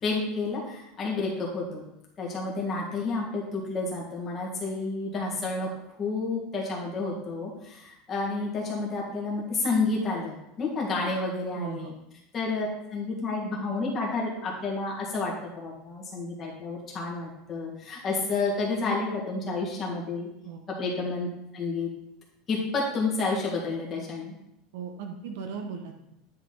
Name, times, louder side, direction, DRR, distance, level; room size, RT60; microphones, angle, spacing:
voice 1, 0.0-1.8 2.2-5.7 6.0-11.9 12.3-20.3 20.7-21.3 21.5-21.9 22.5-24.3, left 3 dB, 25° left, -3 dB, 1.8 m, -30 dB
voice 2, 11.5-11.9 20.4-20.6 24.7-26.1, right 6 dB, 80° right, 4 dB, 0.9 m, -37 dB
9.6 x 4.1 x 4.0 m, 0.84 s
supercardioid pair, 170°, 0 cm